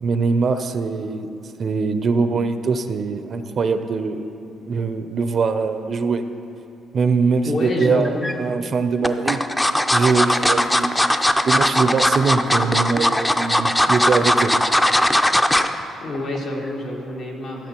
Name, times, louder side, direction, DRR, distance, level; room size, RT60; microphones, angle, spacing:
voice 1, 0.0-1.3 1.6-4.3 4.6-6.2 6.9-9.4 9.9-11.0 11.4-14.5, right 4 dB, 50° right, 9 dB, 0.4 m, -22 dB
voice 2, 7.4-8.3 16.0-17.7, left 1 dB, 75° left, -2 dB, 1.6 m, -27 dB
sound 1, 7.8-8.3 9.0-15.7 16.1-16.4 16.7-16.8, left 1 dB, 10° left, 0.4 m, -18 dB
14.5 x 7.2 x 2.9 m, 2.8 s
cardioid pair, 90°, 0 cm